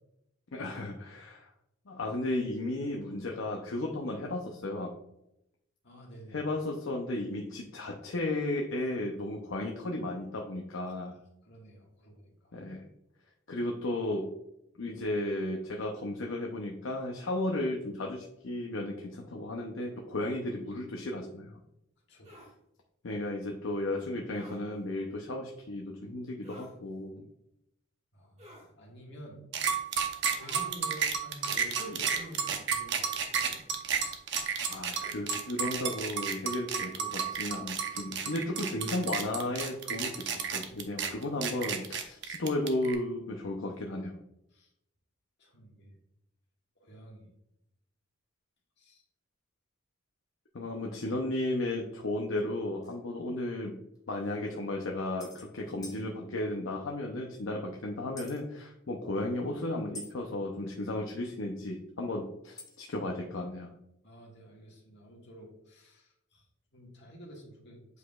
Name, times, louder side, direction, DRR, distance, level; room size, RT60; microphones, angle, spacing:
voice 1, 0.5-1.5 1.9-4.9 6.3-11.2 12.5-12.9 13.5-14.3 14.8-21.6 23.0-27.3 34.7-44.2 50.5-53.8 54.1-63.7, left 1 dB, 75° left, 1 dB, 0.7 m, -34 dB
voice 2, 5.8-6.4 10.8-10.9 11.4-12.6 22.1-22.4 28.1-29.4 30.3-33.6 44.5-44.7 45.4-45.9 46.8-47.3 48.8-49.0 51.1-51.2 64.0-66.4 66.7-67.8, equal, 60° left, -2 dB, 1.8 m, -49 dB
sound 1, 22.2-22.5 24.3-24.6 26.4-26.8 28.4-28.7 30.4-30.7 32.1-32.4, left 1 dB, 35° right, 1.6 m, -51 dB
sound 2, 29.5-42.9, right 7 dB, 60° right, 0.8 m, -32 dB
sound 3, 52.8-53.0 54.0-54.1 54.3-54.4 55.2-55.5 55.8-56.0 58.2-58.4 59.9-60.1 62.6-62.9, left 1 dB, 20° left, 0.9 m, -46 dB
8.1 x 4.9 x 2.4 m, 0.83 s
head